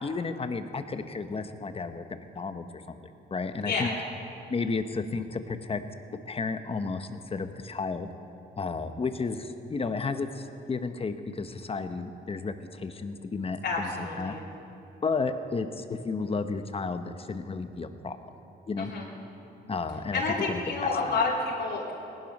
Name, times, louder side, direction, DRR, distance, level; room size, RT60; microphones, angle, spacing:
voice 1, 0.0-2.0 2.3-3.0 3.3-3.9 4.5-5.8 6.1-8.1 8.6-13.9 14.2-14.3 15.0-18.2 18.7-18.9 19.7-20.2 20.5-21.1, left 4 dB, 30° left, 9 dB, 1.0 m, -32 dB
voice 2, 13.6-14.4 18.8-19.1 20.1-21.9, left 3 dB, 60° left, -5 dB, 2.8 m, -29 dB
18.0 x 11.5 x 5.4 m, 2.9 s
cardioid pair, 90°, 20 cm